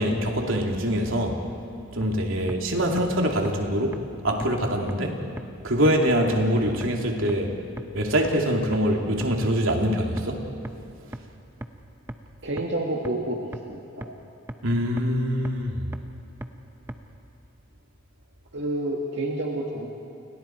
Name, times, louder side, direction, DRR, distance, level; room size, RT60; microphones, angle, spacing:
voice 1, 0.0-1.4 1.9-5.2 5.6-7.6 7.9-10.5 14.6-15.8, equal, 75° right, 1 dB, 2.7 m, -24 dB
sound 1, 2.0-2.1 2.5-2.6 3.0-3.1 3.4-3.5 3.9-4.0 4.4-4.5 4.9-5.0 5.4-5.5 5.8-5.9 6.3-6.4 6.8-6.9 7.3-7.4 7.8-7.9 8.2-8.3 8.7-8.8 9.2-9.3 9.7-9.8 10.2-10.3 10.6-10.7 11.1-11.2 11.6-11.7 12.1-12.2 12.6-12.7 13.0-13.1 13.5-13.6 14.0-14.1 14.5-14.6 15.0-15.1 15.4-15.5 15.9-16.0 16.4-16.5 16.9-17.0, right 1 dB, 10° right, 0.8 m, -34 dB
voice 2, 12.4-13.4 13.7-14.1 18.5-19.9, right 1 dB, 55° right, -1 dB, 2.1 m, -29 dB
30.0 x 29.5 x 4.6 m, 2.7 s
head